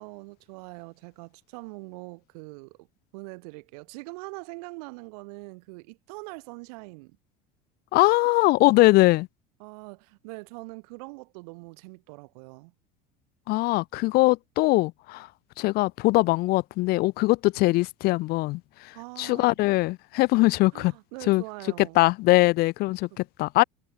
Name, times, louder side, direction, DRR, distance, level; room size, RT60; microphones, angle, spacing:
voice 1, 0.0-2.9 3.1-7.2 8.4-9.1 9.6-12.7 18.9-19.6 20.7-22.0 23.1-23.2, right 29 dB, 70° right, 1.2 m, -43 dB
voice 2, 7.9-9.3 13.5-15.3 15.6-20.9 21.3-21.4 21.8-23.6, left 21 dB, 50° left, 0.4 m, -22 dB
hypercardioid pair, 75°, 21 cm